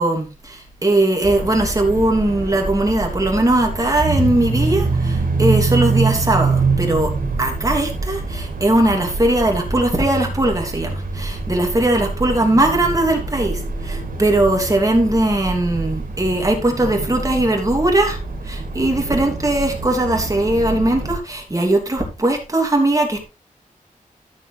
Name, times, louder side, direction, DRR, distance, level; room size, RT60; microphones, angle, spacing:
voice 1, 0.0-7.1 7.4-18.2 18.4-23.2, right 1 dB, 25° right, 2.9 m, -19 dB
sound 1, 1.2-21.2, right 3 dB, 85° right, 2.4 m, -25 dB
13.0 x 7.2 x 3.4 m
wide cardioid pair, 115°, 14 cm